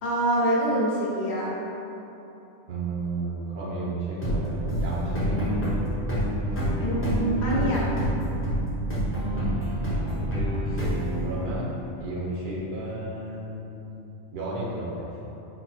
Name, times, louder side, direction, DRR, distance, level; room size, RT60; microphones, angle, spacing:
voice 1, 0.0-1.5 6.8-7.8, right 1 dB, 65° left, -5 dB, 1.0 m, -25 dB
voice 2, 2.7-5.5 8.8-9.2 9.8-11.7 12.0-13.9 14.3-15.3, right 2 dB, 60° right, -6 dB, 0.8 m, -34 dB
sound 1, 4.2-11.8, equal, 15° left, 0.5 m, -27 dB
4.0 x 2.1 x 4.0 m, 3.0 s
omnidirectional pair, 1.3 m